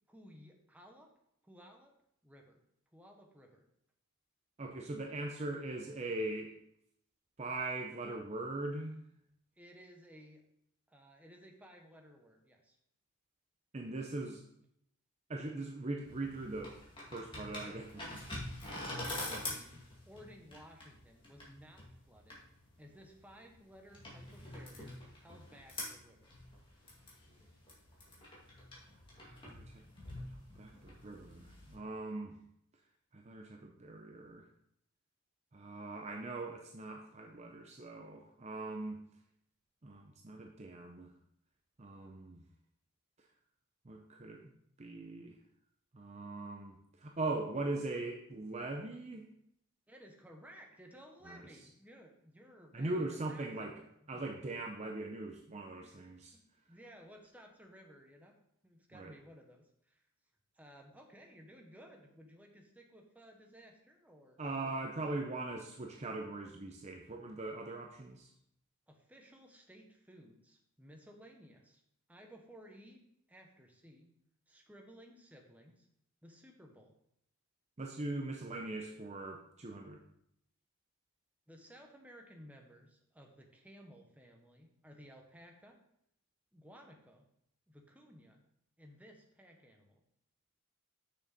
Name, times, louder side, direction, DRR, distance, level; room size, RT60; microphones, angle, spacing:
voice 1, 0.1-1.1 1.4-1.9 2.2-2.6 2.9-3.6 9.6-10.4 10.9-12.8 18.7-22.4 22.8-26.3 49.9-54.2 55.8-56.0 56.3-60.0 60.5-65.2 68.9-71.8 72.1-74.1 74.5-75.9 76.2-76.9 81.5-85.8 86.5-87.3 87.7-88.4 88.8-90.0, equal, 5° right, 2 dB, 1.0 m, -57 dB
voice 2, 4.6-6.5 7.4-9.0 13.7-14.4 15.3-16.7 17.1-18.5 29.2-29.8 30.6-32.3 33.1-34.5 35.5-39.0 39.8-41.1 41.8-42.4 43.8-44.4 44.8-45.3 45.9-49.3 51.2-51.4 52.7-53.7 54.1-56.3 58.9-59.1 64.4-68.3 77.8-80.0, right 2 dB, 30° right, 2 dB, 0.6 m, -41 dB
sound 1, 16.0-31.7, left 1 dB, 25° left, 2.1 m, -46 dB
6.5 x 6.4 x 4.1 m, 0.73 s
head